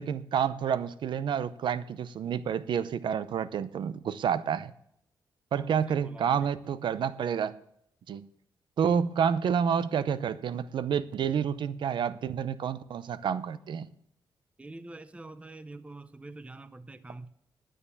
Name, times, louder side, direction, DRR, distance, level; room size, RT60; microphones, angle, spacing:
voice 1, 0.0-4.7 5.5-7.6 8.1-8.3 8.8-13.9, right 7 dB, 70° right, 0.7 m, -29 dB
voice 2, 5.5-6.3 14.6-17.3, right 2 dB, 15° right, 0.7 m, -46 dB
10.0 x 9.4 x 7.0 m
cardioid pair, 100°, 8 cm